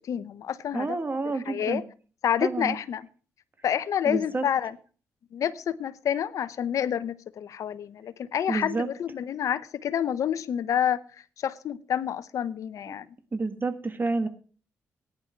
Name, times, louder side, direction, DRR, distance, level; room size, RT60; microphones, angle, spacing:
voice 1, 0.1-1.2 1.5-1.8 2.2-3.1 3.6-4.8 5.3-11.0 11.4-13.1, left 9 dB, 65° left, 0.8 m, -28 dB
voice 2, 0.7-1.8 2.4-2.8 4.1-4.5 8.5-8.9 13.3-14.3, right 3 dB, 35° right, 1.7 m, -29 dB
15.0 x 10.5 x 4.5 m
supercardioid pair, 55°, 6 cm